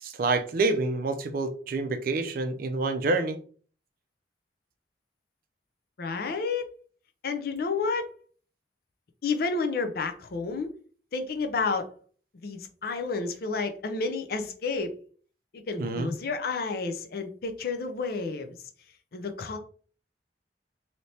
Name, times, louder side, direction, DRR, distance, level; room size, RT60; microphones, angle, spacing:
voice 1, 0.0-3.4 15.8-16.1, right 3 dB, 55° right, 0.4 m, -27 dB
voice 2, 6.0-6.7 7.2-8.1 9.2-10.7 11.1-11.9 12.4-14.9 15.7-18.6 19.1-19.6, left 4 dB, 55° left, 0.5 m, -30 dB
3.2 x 2.8 x 2.7 m
head